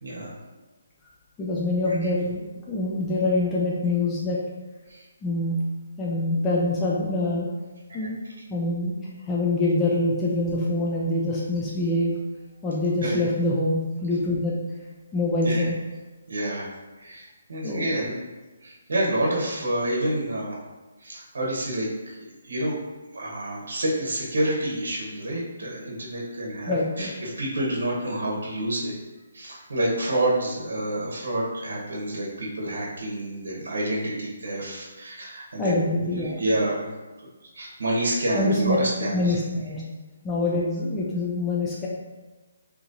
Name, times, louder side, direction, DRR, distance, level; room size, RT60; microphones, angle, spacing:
voice 1, 0.0-0.3 2.0-2.1 4.9-5.0 7.9-8.1 13.0-13.2 15.4-15.7 16.3-16.7 17.0-18.2 18.6-20.5 21.0-22.8 23.1-28.9 29.3-35.7 36.1-36.9 37.5-39.3, right 1 dB, 80° right, -3 dB, 0.9 m, -28 dB
voice 2, 1.4-4.4 5.2-5.6 6.0-7.5 7.9-8.2 8.5-9.0 9.3-12.2 12.6-14.6 15.1-15.8 17.6-17.9 26.7-27.1 35.6-36.4 38.3-38.8 39.1-39.8 40.2-41.9, left 2 dB, 10° left, -6 dB, 0.4 m, -25 dB
2.9 x 2.5 x 3.9 m, 1.2 s
hypercardioid pair, 165°, 0 cm